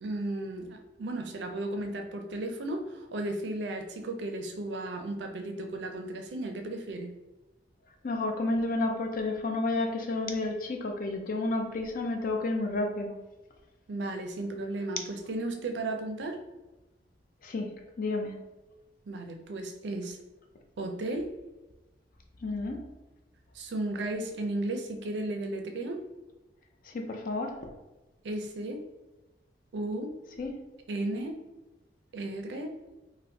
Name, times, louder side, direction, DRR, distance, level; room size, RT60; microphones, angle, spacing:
voice 1, 0.0-7.1 13.9-16.4 19.1-20.2 20.8-21.3 23.5-26.0 28.2-28.8 29.7-30.1 30.9-31.4 32.1-32.7, right 2 dB, 70° right, 5 dB, 0.4 m, -34 dB
voice 2, 8.0-13.1 17.4-17.7 18.0-18.3 22.4-22.8 26.9-27.7 30.4-30.5, left 2 dB, 50° left, 4 dB, 0.5 m, -31 dB
4.3 x 2.1 x 2.7 m, 1.1 s
head